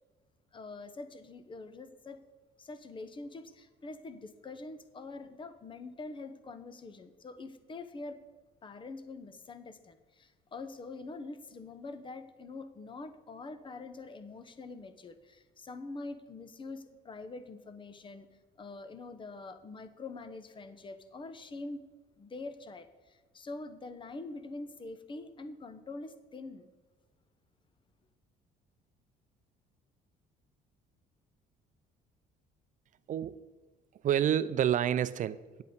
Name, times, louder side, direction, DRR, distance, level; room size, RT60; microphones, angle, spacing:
voice 1, 0.5-2.2 2.6-8.2 8.6-18.3 18.6-21.8 22.2-26.7, left 3 dB, 30° left, 11 dB, 1.0 m, -45 dB
voice 2, 33.1-33.4 34.0-35.6, right 10 dB, 50° right, 16 dB, 0.5 m, -28 dB
9.6 x 8.3 x 5.2 m, 1.3 s
cardioid pair, 110°, 17 cm